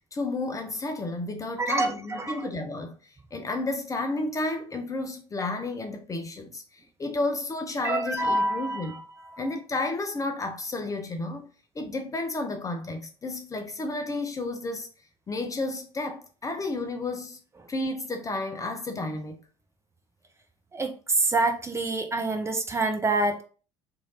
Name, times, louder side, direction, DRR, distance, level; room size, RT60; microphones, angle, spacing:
voice 1, 0.1-2.9 3.3-9.0 9.4-11.5 11.8-14.9 15.3-17.4 17.7-19.4, left 2 dB, 20° left, 0.6 m, -32 dB
voice 2, 1.6-2.5 7.8-9.0 9.3-9.4 20.7-20.9 21.2-23.4, right 2 dB, 20° right, 0.7 m, -26 dB
3.1 x 2.7 x 3.9 m
figure-of-eight pair, 65°, 15 cm